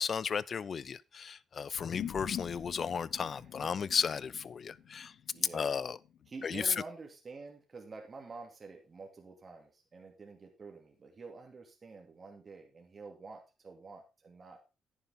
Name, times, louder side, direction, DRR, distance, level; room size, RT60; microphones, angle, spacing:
voice 1, 0.0-5.1 5.5-6.0 6.4-6.6, left 6 dB, 45° left, 0.5 m, -34 dB
sound 1, 1.7-6.5, left 9 dB, 75° left, 1.9 m, -45 dB
voice 2, 3.2-3.9 5.3-5.8 6.3-14.6, right 4 dB, 35° right, 2.5 m, -48 dB
10.0 x 9.9 x 3.6 m
cardioid pair, 90°, 0 cm